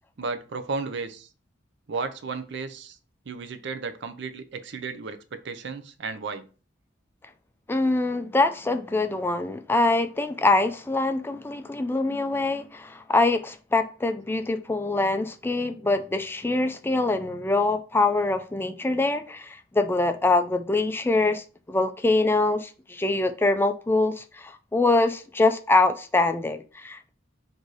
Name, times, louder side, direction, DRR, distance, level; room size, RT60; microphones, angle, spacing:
voice 1, 0.2-1.3 1.9-3.0 3.3-6.5, right 4 dB, 60° right, 0.5 m, -34 dB
voice 2, 7.7-27.1, left 2 dB, 10° left, 0.3 m, -24 dB
3.9 x 2.6 x 4.7 m
head